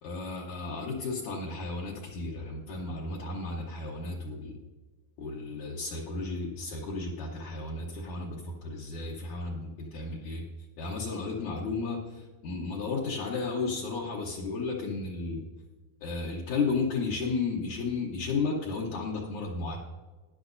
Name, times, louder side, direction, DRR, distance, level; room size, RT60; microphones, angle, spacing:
voice 1, 0.0-4.6 5.2-10.4 10.8-15.4 16.0-19.8, left 4 dB, 65° left, -3 dB, 2.1 m, -33 dB
14.0 x 10.0 x 2.6 m, 1.3 s
omnidirectional pair, 4.2 m